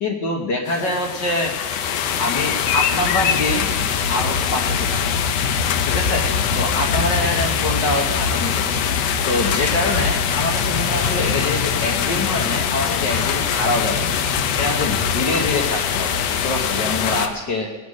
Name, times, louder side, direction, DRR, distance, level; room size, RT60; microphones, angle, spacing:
voice 1, 0.0-1.6 2.2-3.7 4.1-5.0 5.8-6.3 6.5-8.8 9.2-14.1 14.6-17.7, left 2 dB, 55° left, 2 dB, 1.2 m, -25 dB
sound 1, 0.7-17.3, left 7 dB, 70° left, 1.6 m, -22 dB
19.5 x 8.2 x 6.3 m, 1.2 s
omnidirectional pair, 3.6 m